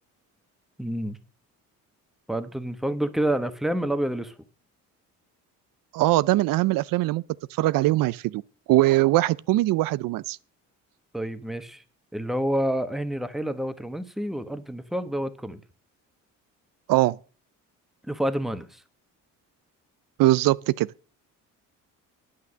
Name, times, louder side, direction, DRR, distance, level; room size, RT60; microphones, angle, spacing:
voice 1, 0.8-1.2 2.3-4.4 11.1-11.8 12.1-15.6 18.1-18.8, right 1 dB, ahead, 1.1 m, -28 dB
voice 2, 5.9-7.2 7.5-8.4 8.7-10.4 16.9-17.2 20.2-20.9, right 17 dB, 80° right, 0.5 m, -21 dB
9.3 x 8.5 x 6.4 m
cardioid pair, 95°, 33 cm